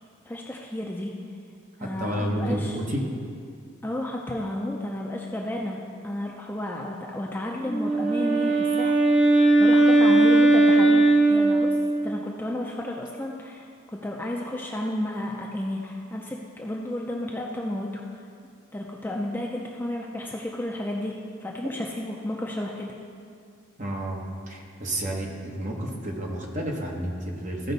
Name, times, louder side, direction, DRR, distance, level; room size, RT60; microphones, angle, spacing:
voice 1, 0.3-1.1 1.8-2.7 3.8-18.3 18.7-21.1 21.4-22.9, left 1 dB, 10° left, -1 dB, 0.5 m, -32 dB
voice 2, 1.8-3.0 23.8-27.7, right 1 dB, 35° right, -1 dB, 1.2 m, -30 dB
Wind instrument woodwind instrument, 7.6-12.2, right 2 dB, 5° right, 1.0 m, -19 dB
14.5 x 5.2 x 4.0 m, 2.3 s
head